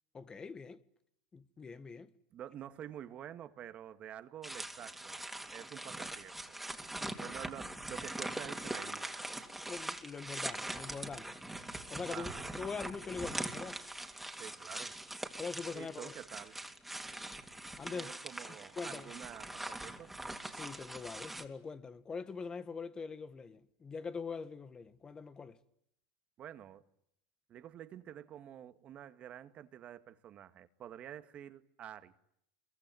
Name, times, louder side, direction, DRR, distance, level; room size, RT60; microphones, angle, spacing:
voice 1, 0.1-0.8 1.3-2.1 7.0-7.3 9.7-11.4 11.9-12.3 12.6-13.8 15.4-16.1 17.8-18.1 18.8-19.1 20.5-25.6, left 5 dB, 25° left, 1.8 m, -43 dB
voice 2, 2.3-6.6 7.2-9.3 12.1-12.5 14.4-15.0 15.7-16.6 17.9-20.1 26.4-26.8 27.5-32.1, right 10 dB, 40° right, 2.1 m, -48 dB
sound 1, 4.4-21.4, right 1 dB, 5° right, 3.2 m, -42 dB
27.5 x 23.0 x 9.3 m
hypercardioid pair, 95°, 3 cm